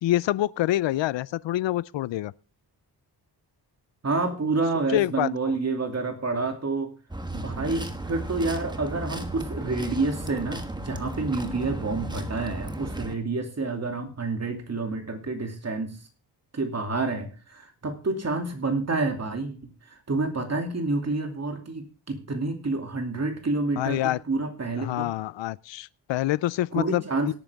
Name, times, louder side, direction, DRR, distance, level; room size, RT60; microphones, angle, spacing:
voice 1, 0.0-2.3 4.9-5.3 23.8-24.2 24.8-27.0, left 14 dB, 80° left, 0.5 m, -26 dB
voice 2, 4.0-6.9 7.3-16.0 16.5-19.6 19.9-25.1 26.7-27.3, right 3 dB, 35° right, 2.7 m, -28 dB
sound 1, 7.1-13.1, right 1 dB, 10° right, 1.3 m, -35 dB
17.5 x 9.0 x 3.5 m
wide cardioid pair, 120°, 43 cm